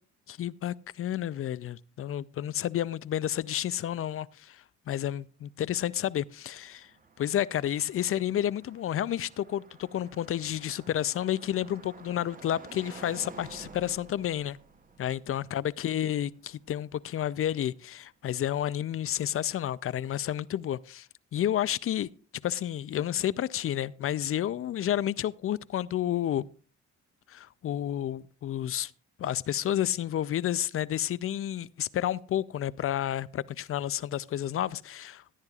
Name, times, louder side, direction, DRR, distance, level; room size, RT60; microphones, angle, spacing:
voice 1, 0.3-6.9 7.2-14.6 15.0-22.1 22.4-26.5 27.3-28.9 29.2-35.2, left 11 dB, 50° left, 0.4 m, -30 dB
Car passing by, 5.8-17.7, right 4 dB, 30° right, 0.9 m, -52 dB
17.5 x 9.7 x 2.4 m
cardioid pair, 90°, 30 cm